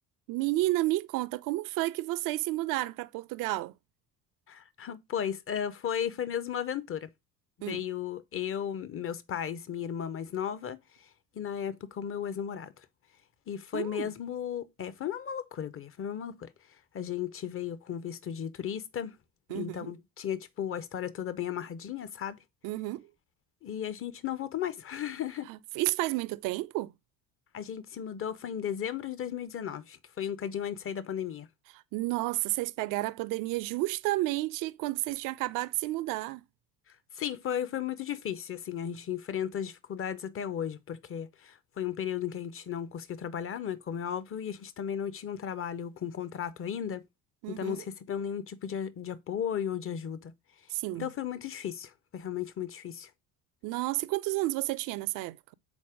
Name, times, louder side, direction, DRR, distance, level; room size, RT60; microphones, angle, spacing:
voice 1, 0.3-3.7 7.6-7.8 13.7-14.1 19.5-19.9 22.6-23.1 25.5-26.9 31.9-36.4 47.4-47.8 50.7-51.1 53.6-55.5, right 18 dB, 45° right, 0.5 m, -31 dB
voice 2, 4.5-7.1 7.7-11.1 11.3-12.7 13.5-16.5 16.9-19.2 19.5-22.4 23.6-25.5 27.5-31.5 37.1-47.0 47.5-50.3 51.0-53.1, left 9 dB, 25° left, 0.7 m, -35 dB
5.3 x 4.2 x 4.9 m
figure-of-eight pair, 60°, 49 cm